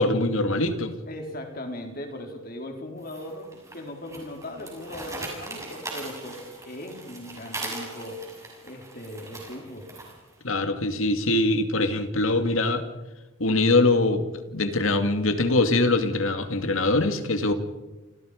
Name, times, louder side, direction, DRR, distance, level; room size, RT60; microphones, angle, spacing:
voice 1, 0.0-0.9 10.4-12.8 13.4-17.5, left 2 dB, 65° left, 8 dB, 2.3 m, -23 dB
voice 2, 1.1-8.4 8.6-9.9, left 1 dB, 40° left, 3 dB, 4.2 m, -38 dB
sound 1, 3.0-10.3, right 2 dB, 15° right, 6.7 m, -40 dB
29.0 x 27.0 x 5.2 m, 1.1 s
head